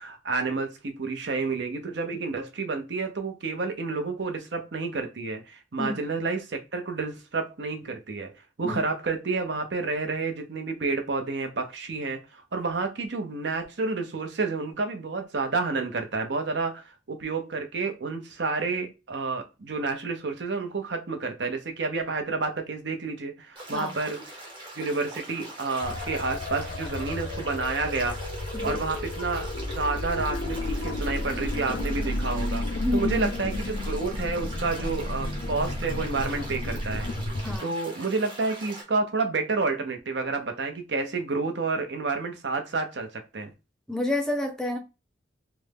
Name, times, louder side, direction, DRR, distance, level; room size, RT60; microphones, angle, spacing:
voice 1, 0.0-8.3 8.6-24.4 24.8-28.2 28.6-32.7 32.9-37.1 37.6-43.5, right 3 dB, 70° right, 0.7 m, -30 dB
sound 1, 23.6-38.8, right 1 dB, 25° right, 0.8 m, -42 dB
sound 2, 25.8-37.6, left 1 dB, 65° left, 0.4 m, -32 dB
voice 2, 32.8-33.3 37.4-37.7 43.9-44.8, left 1 dB, 5° left, 0.5 m, -29 dB
3.4 x 2.1 x 3.3 m
head